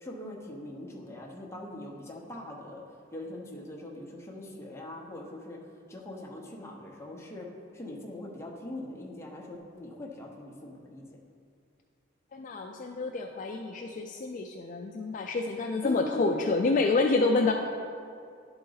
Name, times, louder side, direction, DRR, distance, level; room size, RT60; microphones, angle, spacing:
voice 1, 0.0-2.8 3.1-5.6 5.9-7.5 7.7-11.0 15.8-16.4, left 1 dB, 15° left, -2 dB, 0.8 m, -41 dB
voice 2, 12.3-17.5, left 3 dB, 40° left, 2 dB, 0.3 m, -28 dB
11.0 x 3.9 x 3.9 m, 2.3 s
head